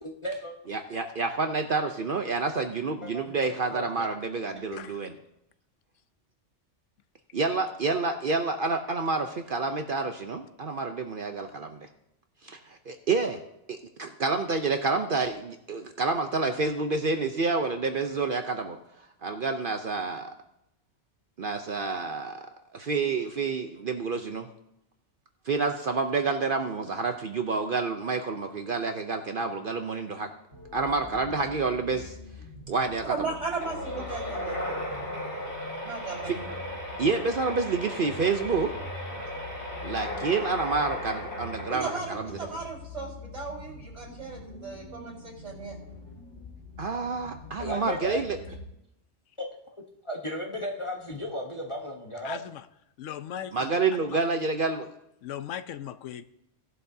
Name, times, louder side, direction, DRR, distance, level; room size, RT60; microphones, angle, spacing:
voice 1, 0.0-0.5 3.0-3.3 3.7-4.1 4.7-4.8 47.5-48.2 49.4-49.5 50.0-52.4, equal, 25° left, 0 dB, 1.1 m, -35 dB
voice 2, 0.7-5.1 7.3-11.9 12.4-13.4 13.7-18.8 19.2-20.3 21.4-22.5 22.7-24.5 25.5-30.3 30.7-32.2 32.7-33.3 36.3-36.4 37.0-38.7 39.8-42.4 46.8-48.4 53.5-54.9, right 4 dB, 50° right, 6 dB, 0.8 m, -28 dB
sound 1, 30.5-48.7, left 3 dB, 70° left, 2.8 m, -45 dB
voice 3, 33.1-35.2 35.8-36.5 41.7-45.8, right 4 dB, 75° right, -3 dB, 4.5 m, -36 dB
sound 2, 33.6-42.4, equal, 45° left, 3.3 m, -36 dB
voice 4, 52.2-52.7 53.0-53.7 54.1-54.2 55.2-56.2, left 10 dB, 85° left, 12 dB, 1.0 m, -38 dB
17.0 x 11.0 x 2.7 m, 0.81 s
omnidirectional pair, 1.3 m